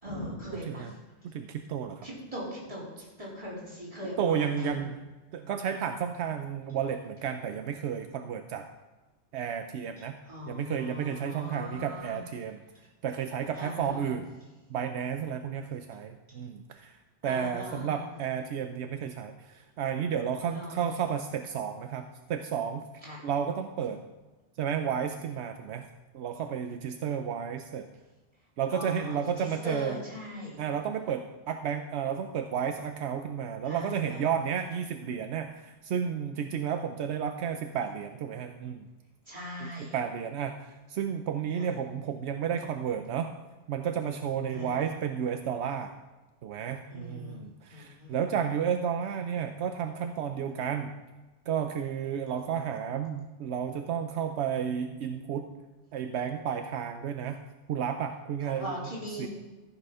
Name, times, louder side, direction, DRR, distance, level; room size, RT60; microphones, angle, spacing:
voice 1, 0.0-0.9 2.0-4.7 10.3-12.2 13.5-14.2 17.2-18.1 20.5-20.9 23.0-23.2 28.7-30.6 33.6-34.3 39.3-40.0 41.5-41.7 44.5-44.8 46.9-47.4 47.7-48.2 58.4-59.3, equal, 30° right, -7 dB, 3.8 m, -40 dB
voice 2, 1.2-2.1 4.2-5.0 5.3-8.7 9.3-10.1 10.5-12.6 13.0-14.3 14.7-17.0 17.2-22.8 23.2-24.0 24.6-25.9 26.1-27.9 28.6-30.0 30.6-38.9 39.6-43.3 43.7-45.9 46.4-51.0 51.5-55.5 55.9-57.4 57.7-58.8 59.2-59.3, right 8 dB, 80° right, 7 dB, 0.9 m, -32 dB
14.0 x 6.2 x 5.5 m, 1.1 s
omnidirectional pair, 1.1 m